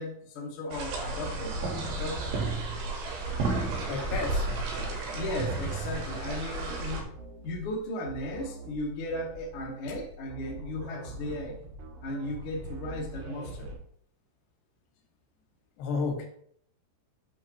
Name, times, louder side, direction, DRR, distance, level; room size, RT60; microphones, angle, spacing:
voice 1, 0.0-2.5 5.1-7.1 7.4-11.6 12.0-13.7, left 1 dB, 60° left, -2 dB, 1.5 m, -36 dB
sound 1, 0.7-7.0, right 3 dB, 90° right, 3.6 m, -32 dB
sound 2, 0.9-13.8, right 2 dB, 75° right, 3.4 m, -45 dB
voice 2, 3.9-4.5 15.8-16.3, left 4 dB, 80° left, 1 dB, 3.6 m, -31 dB
7.7 x 6.2 x 3.0 m, 0.67 s
omnidirectional pair, 4.7 m